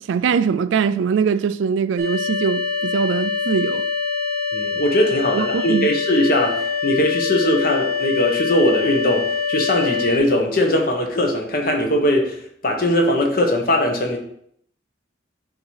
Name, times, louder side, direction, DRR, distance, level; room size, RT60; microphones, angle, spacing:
voice 1, 0.1-3.8 5.3-5.9, right 6 dB, 75° right, 0.3 m, -21 dB
sound 1, 2.0-10.2, left 5 dB, 35° right, 0.9 m, -24 dB
voice 2, 4.5-12.4 12.6-14.2, left 1 dB, 50° left, 1.0 m, -20 dB
7.5 x 2.8 x 4.7 m
head